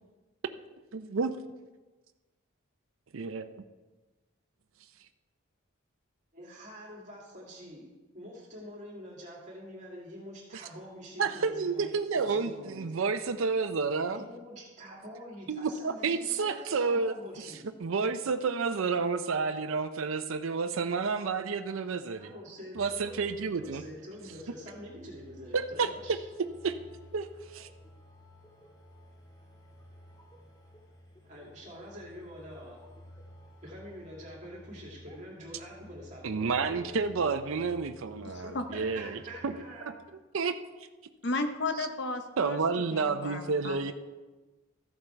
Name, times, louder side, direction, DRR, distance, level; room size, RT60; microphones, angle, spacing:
voice 1, 0.9-1.4 3.1-3.5 10.5-10.6 11.2-14.2 15.5-17.1 17.8-22.3 22.8-23.8 25.5-26.2 26.6-26.7 27.1-27.3 27.5-27.7 36.2-39.2 39.4-39.5 40.3-40.6 42.4-43.9, right 4 dB, 75° right, 8 dB, 0.5 m, -30 dB
voice 2, 6.3-7.9 8.1-12.8 14.1-17.7 22.2-23.2 23.6-26.2 31.2-32.8 33.6-37.0 38.7-40.0, equal, 35° right, -4 dB, 2.5 m, -46 dB
sound 1, 22.7-39.8, equal, 20° left, 1.6 m, -53 dB
voice 3, 38.2-38.6 41.2-42.6 42.9-43.9, left 2 dB, 55° left, 7 dB, 0.8 m, -34 dB
13.5 x 7.1 x 4.5 m, 1.2 s
head